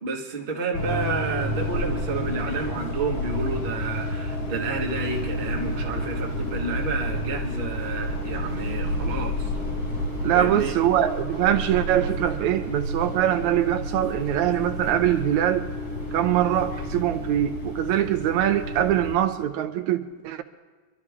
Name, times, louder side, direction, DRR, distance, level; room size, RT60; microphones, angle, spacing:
voice 1, 0.0-9.5 10.3-10.7, right 3 dB, 30° right, 1.0 m, -30 dB
sound 1, 0.7-19.1, equal, 75° left, 6.0 m, -30 dB
voice 2, 10.2-15.7 16.1-20.4, right 12 dB, 80° right, 2.0 m, -23 dB
25.0 x 12.5 x 3.7 m
omnidirectional pair, 3.4 m